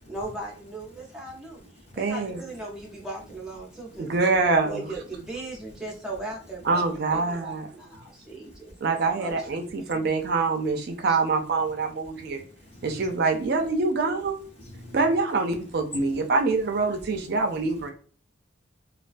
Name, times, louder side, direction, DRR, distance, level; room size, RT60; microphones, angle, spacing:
voice 1, 0.1-4.1 4.6-10.0 11.1-11.2, right 2 dB, 5° right, 0.6 m, -38 dB
voice 2, 2.0-2.4 4.0-4.8 6.7-7.7 8.8-12.4 12.8-14.4 14.9-17.9, right 3 dB, 55° right, 0.4 m, -25 dB
voice 3, 3.7-4.0 8.3-8.6 9.8-10.3 12.0-13.1 14.6-15.1 15.9-16.3 16.9-17.6, left 1 dB, 30° left, 0.8 m, -46 dB
2.3 x 2.2 x 2.4 m
head